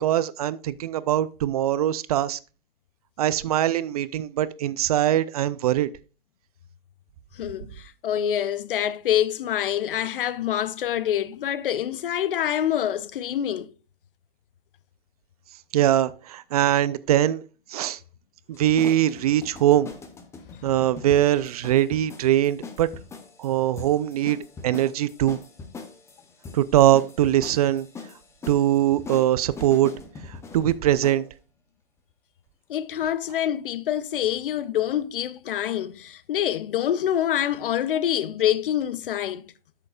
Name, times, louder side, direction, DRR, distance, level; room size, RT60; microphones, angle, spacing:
voice 1, 0.0-2.4 3.2-5.9 15.7-17.4 17.7-18.0 18.5-19.9 20.6-22.9 23.4-24.4 24.6-25.4 26.5-27.9 28.5-29.9 30.3-31.2, right 12 dB, 40° right, 0.4 m, -22 dB
voice 2, 7.4-13.7 32.7-39.4, left 10 dB, 65° left, 0.7 m, -26 dB
sound 1, 18.5-31.3, left 4 dB, 10° left, 0.8 m, -42 dB
12.5 x 6.7 x 2.4 m
hypercardioid pair, 140°, 29 cm